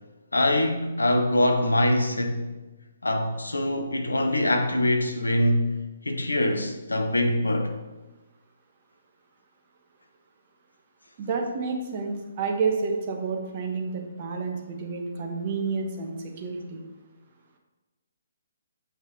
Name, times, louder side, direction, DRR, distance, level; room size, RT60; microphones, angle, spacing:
voice 1, 0.3-2.5 3.0-5.7 6.0-7.7, left 1 dB, 75° left, 0.8 m, -23 dB
voice 2, 11.2-16.8, right 4 dB, 35° right, 1.2 m, -30 dB
7.8 x 5.6 x 3.8 m
figure-of-eight pair, 135°, 0 cm